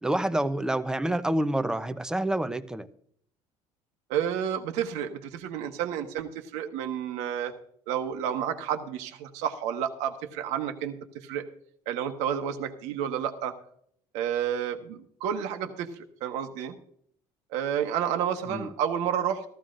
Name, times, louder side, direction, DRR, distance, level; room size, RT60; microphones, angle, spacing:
voice 1, 0.0-2.9 18.5-18.7, right 1 dB, 5° right, 0.7 m, -28 dB
voice 2, 4.1-7.5 7.9-11.5 11.9-13.5 14.1-16.7 17.5-19.4, right 9 dB, 85° right, 1.2 m, -30 dB
15.0 x 14.0 x 2.5 m
cardioid pair, 120°, 12 cm